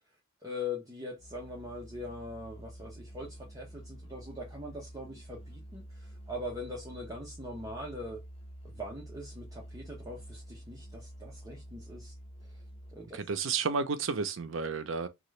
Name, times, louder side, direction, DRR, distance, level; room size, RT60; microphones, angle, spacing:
voice 1, 0.4-8.2 8.6-12.1 12.4-12.6 12.9-13.2, left 2 dB, 20° right, 0.8 m, -42 dB
Musical instrument, 1.2-13.2, equal, 30° left, 0.6 m, -48 dB
voice 2, 13.1-15.1, right 5 dB, 80° right, 0.5 m, -31 dB
2.9 x 2.4 x 3.1 m
head